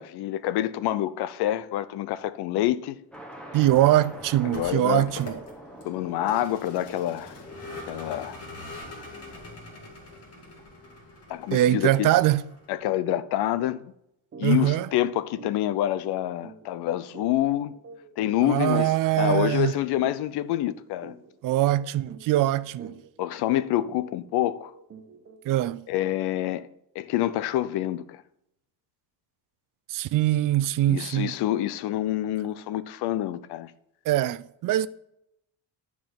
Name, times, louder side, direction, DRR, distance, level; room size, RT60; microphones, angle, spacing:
voice 1, 0.0-3.0 4.4-5.1 5.8-7.4 7.9-8.4 11.3-12.1 12.7-13.8 14.4-17.7 18.2-18.9 19.2-21.1 23.2-24.7 25.9-26.7 26.9-28.2 30.9-33.7, left 13 dB, 85° left, 0.7 m, -27 dB
sound 1, 3.1-10.7, right 1 dB, 5° left, 1.2 m, -46 dB
Vehicle, 3.4-12.8, left 2 dB, 40° left, 2.4 m, -44 dB
voice 2, 3.5-5.4 11.5-12.5 14.4-14.9 18.4-19.7 21.4-23.0 25.5-25.9 29.9-31.4 34.1-34.9, right 14 dB, 60° right, 0.5 m, -23 dB
sound 2, 14.3-14.5 14.8-15.0 15.4-25.6, right 4 dB, 35° right, 1.1 m, -48 dB
11.5 x 4.8 x 5.8 m
cardioid pair, 155°, 38 cm